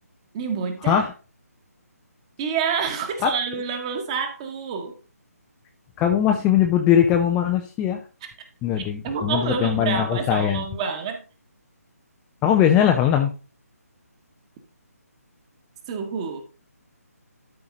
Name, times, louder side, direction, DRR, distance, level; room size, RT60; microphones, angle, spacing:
voice 1, 0.3-1.0 2.4-5.0 9.0-11.2 15.9-16.4, right 6 dB, 20° right, 1.4 m, -28 dB
voice 2, 6.0-8.0 8.6-10.6 12.4-13.3, left 9 dB, 10° left, 0.5 m, -20 dB
12.5 x 4.8 x 3.9 m
figure-of-eight pair, 145°, 9 cm